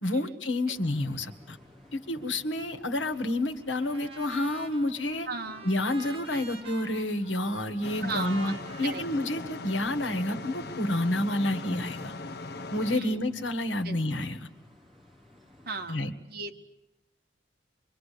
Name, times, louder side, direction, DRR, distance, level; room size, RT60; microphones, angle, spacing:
voice 1, 0.0-1.6 1.9-5.3 5.6-12.1 12.7-14.5 15.9-16.1, left 1 dB, 80° left, 9 dB, 1.9 m, -29 dB
sound 1, 0.7-15.9, left 1 dB, ahead, 5.5 m, -56 dB
Trumpet, 3.8-10.0, right 4 dB, 30° right, 4.6 m, -48 dB
voice 2, 5.3-5.6 8.0-8.5 8.8-9.0 12.9-13.2 13.8-14.0 15.7-16.0 16.3-16.6, right 3 dB, 55° right, 3 dB, 2.4 m, -35 dB
sound 2, 7.8-13.0, left 3 dB, 60° left, 1.0 m, -40 dB
25.0 x 24.5 x 8.6 m, 0.88 s
head